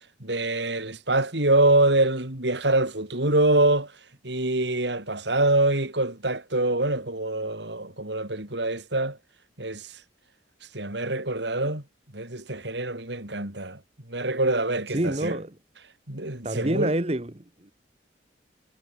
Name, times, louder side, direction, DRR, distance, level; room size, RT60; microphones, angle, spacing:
voice 1, 0.2-3.9 4.2-9.2 9.6-9.9 10.7-11.8 12.1-13.8 14.1-15.4 16.1-16.9, right 2 dB, 75° right, 4.4 m, -25 dB
voice 2, 14.9-15.5 16.4-17.7, right 1 dB, 35° right, 1.2 m, -27 dB
head